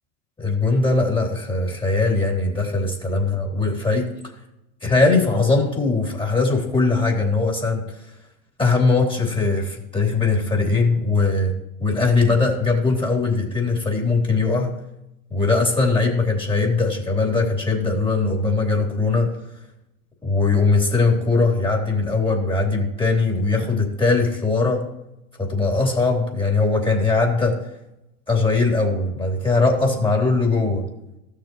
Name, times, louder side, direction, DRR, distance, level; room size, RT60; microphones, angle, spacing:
voice 1, 0.4-4.0 4.8-7.8 8.6-11.5 11.8-14.7 15.3-19.3 20.2-24.8 25.4-27.6 28.3-30.8, left 3 dB, 15° left, -1 dB, 3.2 m, -20 dB
15.5 x 6.8 x 3.1 m, 0.87 s
hypercardioid pair, 90°, 35 cm